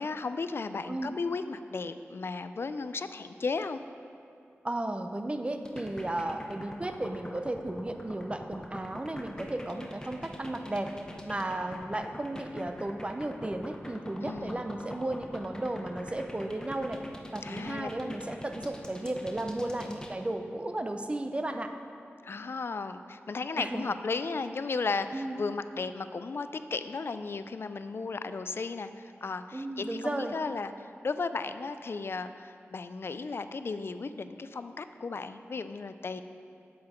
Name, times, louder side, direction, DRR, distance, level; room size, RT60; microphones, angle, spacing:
voice 1, 0.0-3.8 14.2-14.7 17.4-17.9 22.2-36.2, left 4 dB, 55° left, 11 dB, 0.3 m, -35 dB
voice 2, 4.6-10.9 11.2-17.0 17.3-21.7 23.6-23.8 25.1-25.4 29.5-30.3, right 1 dB, 25° right, 6 dB, 0.5 m, -34 dB
sound 1, 5.7-20.1, left 1 dB, 15° left, 0.7 m, -43 dB
7.5 x 6.9 x 4.3 m, 2.5 s
wide cardioid pair, 65°, 5 cm